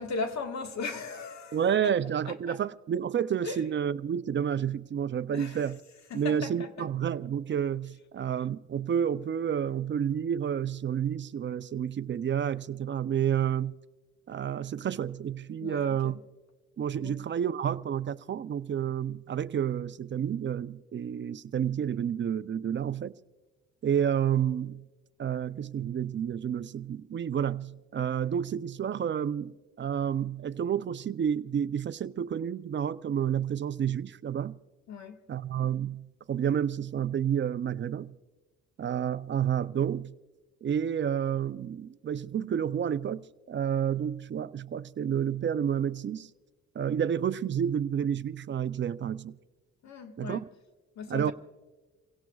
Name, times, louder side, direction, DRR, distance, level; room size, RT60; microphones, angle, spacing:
voice 1, 0.0-1.6 1.8-1.9 2.3-2.6 3.4-3.6 5.3-5.6 6.1-6.7 15.6-16.2 17.0-17.1 34.9-35.2 49.8-50.4 51.0-51.3, left 4 dB, 65° left, 1.6 m, -37 dB
voice 2, 1.5-5.8 6.1-13.7 14.3-16.2 16.8-23.1 23.8-24.9 25.2-34.6 35.3-38.2 38.8-40.2 40.6-46.3 46.7-49.4 50.2-50.4 51.1-51.3, right 8 dB, 40° right, 0.5 m, -30 dB
29.0 x 17.0 x 2.4 m
cardioid pair, 90°, 30 cm